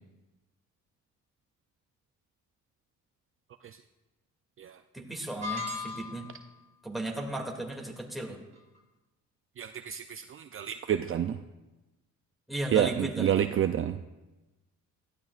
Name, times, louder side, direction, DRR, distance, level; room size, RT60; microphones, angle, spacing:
voice 1, 4.9-6.2 6.8-8.4 12.5-13.5, right 1 dB, ahead, -1 dB, 2.4 m, -35 dB
sound 1, 5.4-6.4, left 4 dB, 25° right, 4.4 m, -36 dB
voice 2, 9.6-11.4 12.7-14.0, right 10 dB, 45° right, 8 dB, 0.5 m, -29 dB
17.0 x 13.5 x 2.5 m, 1.1 s
cardioid pair, 90°, 30 cm